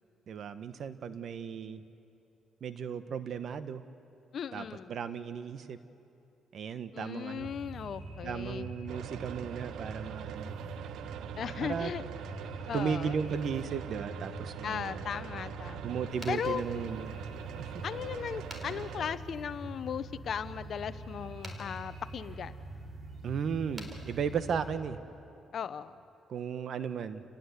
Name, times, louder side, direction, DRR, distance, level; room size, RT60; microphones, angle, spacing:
voice 1, 0.3-1.8 2.6-3.8 4.5-5.8 6.5-7.5 8.2-10.5 11.6-11.9 12.7-15.0 15.8-17.1 17.6-17.8 23.2-25.0 26.3-27.2, right 7 dB, 60° right, 11 dB, 1.2 m, -35 dB
voice 2, 4.3-5.0 6.9-8.7 11.4-12.0 12.7-13.2 14.6-16.0 16.3-16.6 17.8-22.5 25.5-26.0, left 8 dB, 60° left, 13 dB, 0.9 m, -37 dB
sound 1, 7.4-24.8, right 2 dB, 40° right, 7.0 m, -45 dB
sound 2, 8.9-19.2, right 10 dB, 80° right, 0.7 m, -43 dB
sound 3, 16.0-24.8, right 1 dB, 25° right, 4.1 m, -54 dB
29.0 x 18.5 x 8.2 m, 2.7 s
cardioid pair, 90°, 0 cm